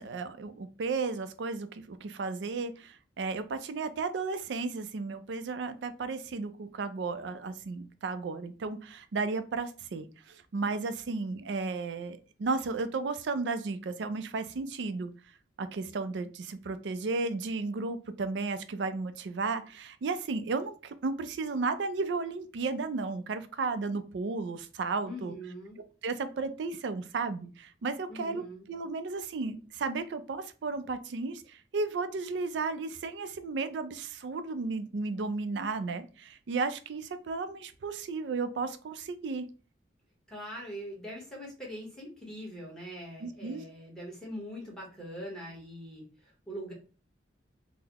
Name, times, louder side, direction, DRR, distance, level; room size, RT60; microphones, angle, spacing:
voice 1, 0.0-15.1 15.6-25.3 26.0-28.4 28.7-39.5 43.2-43.6, right 4 dB, 75° right, 11 dB, 0.4 m, -34 dB
voice 2, 25.1-25.8 28.1-28.7 40.3-46.7, equal, 5° left, -3 dB, 1.0 m, -42 dB
3.8 x 2.0 x 2.9 m, 0.36 s
head